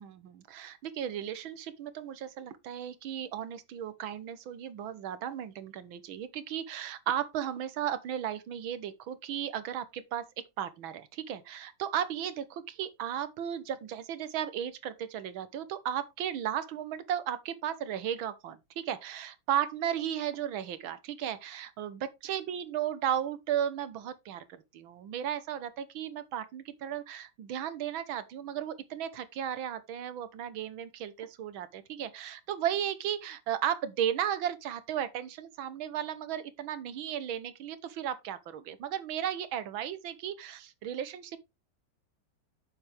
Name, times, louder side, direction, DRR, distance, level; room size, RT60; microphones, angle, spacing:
voice 1, 0.0-41.4, right 10 dB, 90° right, 1.8 m, -35 dB
8.7 x 7.1 x 3.4 m
omnidirectional pair, 2.1 m